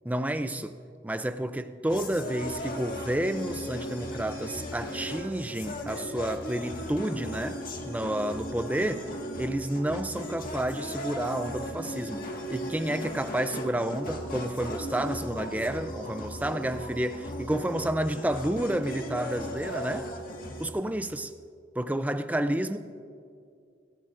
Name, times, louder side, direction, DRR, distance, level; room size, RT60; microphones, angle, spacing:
voice 1, 0.1-0.8 1.0-9.1 9.4-20.1 20.6-21.3 21.7-22.8, right 1 dB, 10° right, 0.4 m, -30 dB
sound 1, 1.9-20.7, equal, 50° left, 1.7 m, -37 dB
29.0 x 14.0 x 2.6 m
head